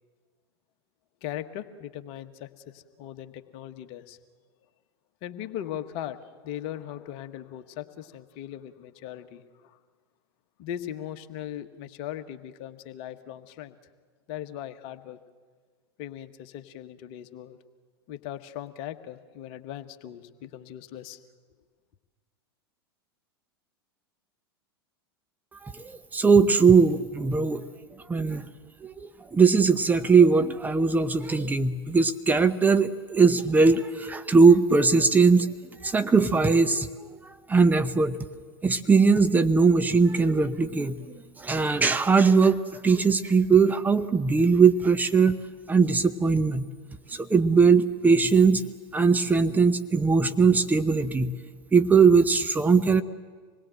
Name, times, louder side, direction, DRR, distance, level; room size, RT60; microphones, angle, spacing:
voice 1, 1.2-2.5 2.7-4.2 5.2-9.8 10.6-13.7 14.3-15.2 16.0-17.6 18.1-21.2, left 11 dB, 45° left, 10 dB, 1.4 m, -39 dB
voice 2, 25.7-27.6 28.1-28.4 28.8-35.5 35.8-36.9 37.5-38.2 38.6-41.0 41.4-45.4 45.7-46.7 47.1-48.6 48.9-51.3 51.7-53.0, right 4 dB, 15° right, 9 dB, 0.9 m, -20 dB
26.0 x 20.5 x 7.8 m, 1.6 s
figure-of-eight pair, 85°, 13 cm